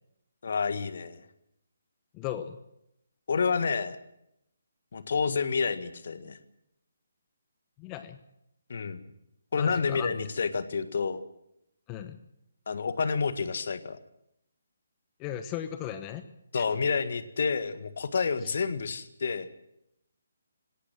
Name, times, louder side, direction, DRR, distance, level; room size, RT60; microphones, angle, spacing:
voice 1, 0.4-1.2 3.3-4.0 4.9-6.4 8.7-9.0 9.5-11.2 12.7-14.0 16.5-19.5, left 5 dB, 55° left, 12 dB, 1.7 m, -29 dB
voice 2, 2.1-2.6 7.8-8.2 9.6-10.1 11.9-12.2 15.2-16.2 16.5-16.6 18.4-18.5, left 11 dB, 20° left, 10 dB, 1.0 m, -37 dB
20.0 x 17.5 x 7.6 m, 0.79 s
figure-of-eight pair, 140°, 0 cm